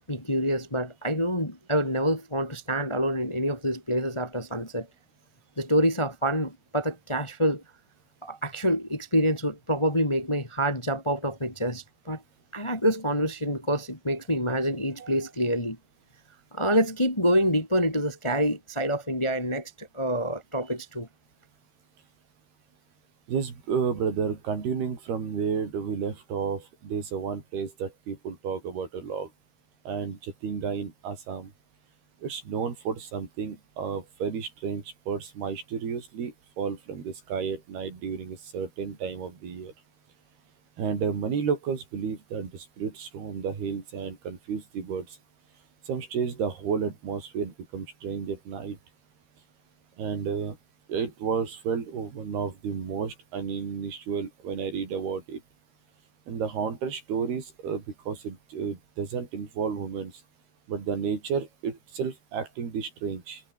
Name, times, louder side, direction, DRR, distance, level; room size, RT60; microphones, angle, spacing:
voice 1, 0.1-4.9 5.6-7.6 8.2-12.2 12.5-15.8 16.5-21.1, equal, 10° left, 2.2 m, -27 dB
voice 2, 23.3-29.3 29.9-31.5 32.2-39.7 40.8-45.2 45.9-48.8 50.0-50.6 50.9-55.4 56.3-60.1 60.7-63.4, right 6 dB, 65° right, 6.2 m, -32 dB
omnidirectional pair, 4.9 m